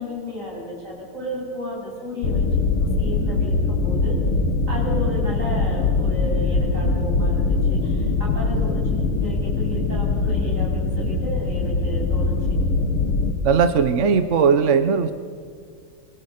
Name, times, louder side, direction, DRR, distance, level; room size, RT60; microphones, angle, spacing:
voice 1, 0.0-2.4 3.0-4.2 4.7-12.3, left 1 dB, 35° right, -3 dB, 8.5 m, -33 dB
sound 1, 2.2-13.3, left 3 dB, 85° left, 2.6 m, -22 dB
voice 2, 13.4-15.1, right 6 dB, 50° right, 10 dB, 0.9 m, -18 dB
26.0 x 24.0 x 6.5 m, 2.2 s
omnidirectional pair, 2.3 m